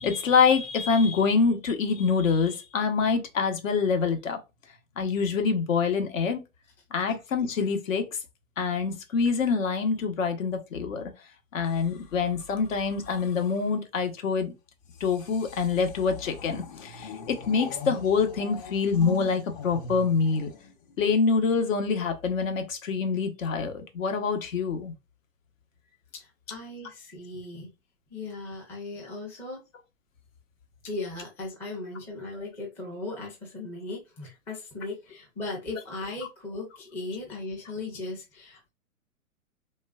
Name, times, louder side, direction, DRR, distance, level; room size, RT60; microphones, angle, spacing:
voice 1, 0.0-4.4 5.0-6.4 6.9-8.0 8.6-11.0 11.5-14.5 15.0-20.5 21.0-24.9, left 5 dB, 70° left, 0.9 m, -25 dB
sound 1, 11.6-13.8 14.8-21.2 22.2-22.5, left 4 dB, 40° left, 0.7 m, -42 dB
voice 2, 26.1-27.7 28.1-29.6 30.8-38.7, left 2 dB, 5° left, 0.4 m, -37 dB
3.1 x 2.4 x 2.3 m
hypercardioid pair, 120°, 41 cm